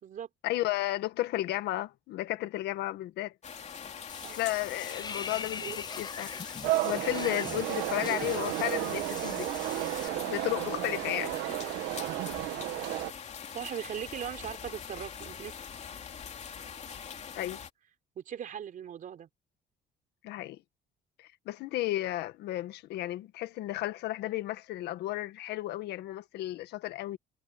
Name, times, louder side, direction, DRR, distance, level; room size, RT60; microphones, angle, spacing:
voice 1, 0.4-3.3 4.3-6.3 6.8-9.5 10.3-11.3 17.4-17.6 20.2-20.6 21.2-27.2, left 16 dB, 80° left, 1.7 m, -33 dB
sound 1, 3.4-17.7, left 7 dB, 40° left, 3.1 m, -43 dB
Water / Bathtub (filling or washing), 4.1-10.1, left 5 dB, 25° left, 0.6 m, -42 dB
sound 2, 6.6-13.1, right 16 dB, 90° right, 1.3 m, -33 dB
voice 2, 13.5-15.5 18.2-19.3, right 9 dB, 55° right, 3.6 m, -39 dB
cardioid pair, 110°, 17 cm